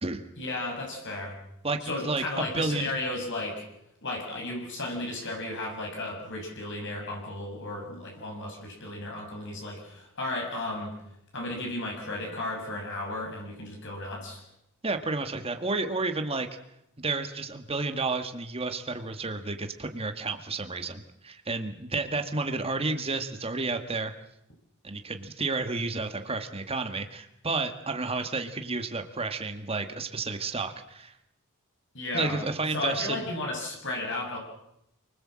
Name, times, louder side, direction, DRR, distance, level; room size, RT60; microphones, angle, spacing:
voice 1, 0.4-1.4 1.8-3.6 4.0-10.9 11.3-14.4 31.9-32.4 32.7-34.4, left 2 dB, 60° left, 0 dB, 6.6 m, -34 dB
voice 2, 1.6-2.9 14.8-16.5 17.0-24.1 24.8-31.1 32.1-33.2, right 3 dB, 25° right, 7 dB, 1.7 m, -31 dB
29.0 x 20.0 x 7.6 m, 0.82 s
head